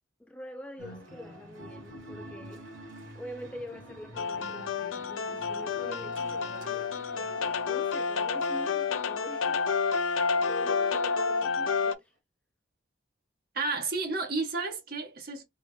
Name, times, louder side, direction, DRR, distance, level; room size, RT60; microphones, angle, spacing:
voice 1, 0.2-2.7 3.1-12.1, left 1 dB, 5° left, 0.3 m, -45 dB
sound 1, 0.8-10.2, equal, 85° right, 1.5 m, -48 dB
sound 2, 4.2-12.0, left 5 dB, 90° left, 0.5 m, -29 dB
voice 2, 13.5-15.4, right 3 dB, 50° right, 1.0 m, -31 dB
3.5 x 2.4 x 3.1 m
head